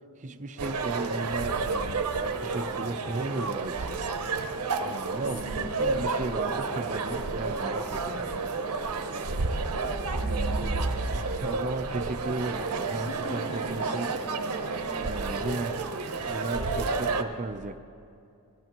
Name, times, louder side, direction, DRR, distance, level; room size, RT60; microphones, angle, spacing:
voice 1, 0.2-4.0 4.8-8.5 11.2-14.1 15.0-15.8 16.3-17.8, right 2 dB, 35° right, 9 dB, 0.5 m, -35 dB
sound 1, 0.6-17.2, right 3 dB, 80° right, 0.8 m, -30 dB
voice 2, 5.1-5.9 10.0-10.8 12.8-14.9, equal, 70° left, -3 dB, 2.3 m, -41 dB
22.0 x 14.0 x 3.0 m, 2.5 s
head